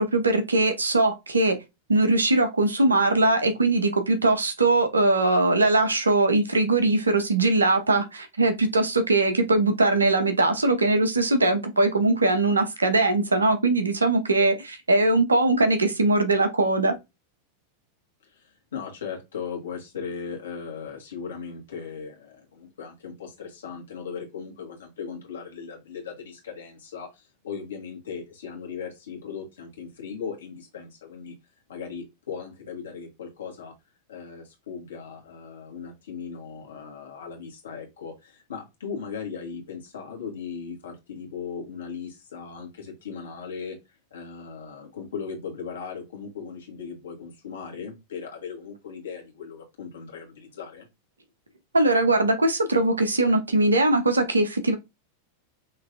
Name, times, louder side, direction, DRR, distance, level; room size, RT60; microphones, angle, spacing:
voice 1, 0.0-1.6 1.9-17.0 51.7-54.8, right 2 dB, 75° right, 0.9 m, -21 dB
voice 2, 18.2-31.4 31.7-33.7 34.1-43.8 44.1-50.9, left 6 dB, 65° left, 1.7 m, -38 dB
5.7 x 3.1 x 2.6 m
figure-of-eight pair, 90°, 0 cm